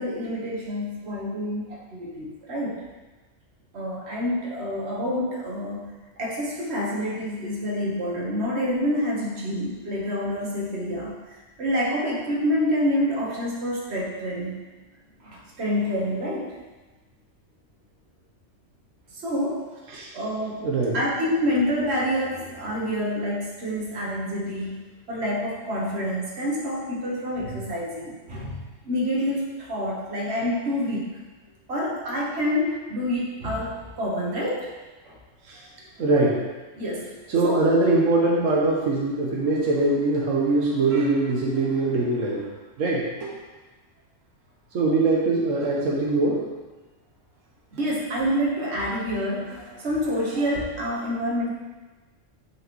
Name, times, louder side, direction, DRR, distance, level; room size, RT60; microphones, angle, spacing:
voice 1, 0.0-2.8 3.7-5.9 6.2-14.6 15.2-16.5 19.1-19.6 20.1-20.6 20.9-24.8 25.1-31.1 31.7-34.7 35.0-35.2 36.8-37.1 37.4-37.6 47.8-51.5, equal, 55° right, -4 dB, 1.6 m, -27 dB
voice 2, 20.6-20.9 35.5-35.6 36.0-36.5 37.3-42.5 42.8-43.3 44.7-46.5, right 2 dB, 90° right, -4 dB, 1.5 m, -22 dB
9.6 x 4.8 x 3.1 m, 1.2 s
omnidirectional pair, 1.3 m